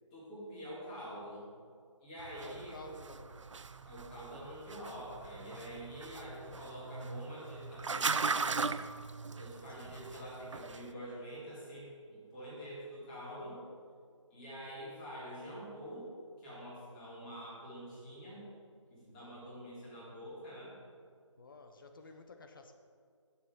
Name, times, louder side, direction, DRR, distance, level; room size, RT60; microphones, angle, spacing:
voice 1, 0.1-1.4 2.0-2.8 3.8-8.6 9.3-13.6 14.3-16.1 16.4-18.4 18.9-20.8, equal, 15° left, -8 dB, 3.1 m, -46 dB
sound 1, 2.2-10.9, right 4 dB, 70° right, 0.6 m, -39 dB
voice 2, 2.4-3.4 9.7-9.9 21.4-22.7, left 2 dB, 40° left, 6 dB, 1.0 m, -52 dB
9.6 x 7.4 x 6.2 m, 2.2 s
figure-of-eight pair, 160°, 16 cm